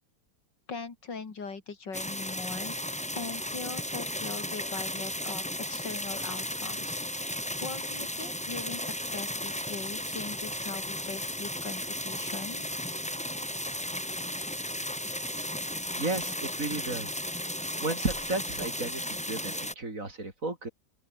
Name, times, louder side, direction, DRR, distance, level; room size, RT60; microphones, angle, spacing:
voice 1, 0.7-2.8 3.1-7.0 7.6-12.7, left 4 dB, 85° left, 3.6 m, -40 dB
sound 1, 1.9-19.7, equal, 5° left, 1.9 m, -35 dB
voice 2, 16.0-17.3 17.5-20.7, right 2 dB, 50° right, 4.6 m, -34 dB
open air
omnidirectional pair, 1.9 m